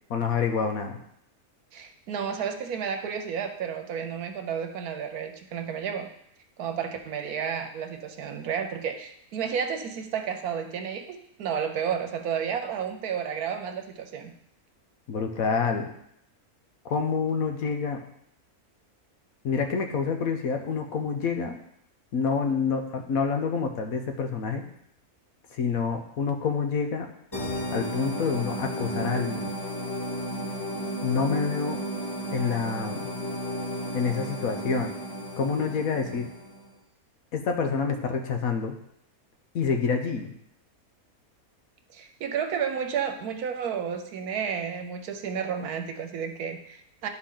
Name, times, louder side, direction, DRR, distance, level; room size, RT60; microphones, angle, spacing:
voice 1, 0.1-1.0 15.1-15.9 16.9-18.0 19.4-21.6 22.1-24.6 25.5-27.1 27.7-29.5 31.0-31.8 32.3-33.1 33.9-34.9 35.4-36.3 37.3-38.8 39.5-40.3, left 5 dB, 70° left, 4 dB, 1.3 m, -27 dB
voice 2, 1.7-6.1 6.6-14.3 41.9-47.1, right 7 dB, 80° right, 6 dB, 1.3 m, -31 dB
sound 1, 27.3-36.7, equal, 20° left, 0.8 m, -33 dB
11.5 x 4.4 x 3.8 m, 0.73 s
omnidirectional pair, 1.6 m